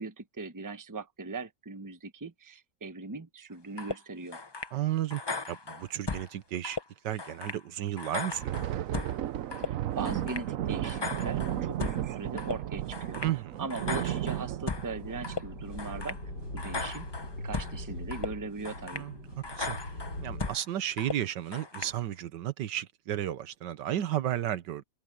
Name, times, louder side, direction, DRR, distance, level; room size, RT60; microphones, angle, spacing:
voice 1, 0.0-4.4 9.6-13.2 13.6-16.2 16.5-17.1 17.4-19.1, right 4 dB, 15° right, 0.9 m, -39 dB
sound 1, 3.8-4.0 4.3-4.7 5.1-6.3 6.6-6.8 7.2-7.6 8.0-9.2 9.5-9.7 10.0-10.4 10.8-12.0 12.4-12.6 12.9-13.3 13.7-14.9 15.2-15.4 15.8-16.2 16.6-17.8 18.1-18.3 18.6-19.1 19.4-20.6 21.0-21.2 21.5-21.9, left 3 dB, 35° left, 0.4 m, -36 dB
voice 2, 4.7-5.2 5.5-6.8 7.0-8.7 13.2-13.7 18.9-19.1 19.6-19.8 20.2-24.8, right 12 dB, 90° right, 1.6 m, -33 dB
Thunder, 8.3-17.3 17.6-17.8 18.2-18.5 19.1-19.6, right 11 dB, 60° right, 0.9 m, -34 dB
sound 2, 13.7-20.5, left 1 dB, 75° left, 7.2 m, -42 dB
omnidirectional pair, 1.8 m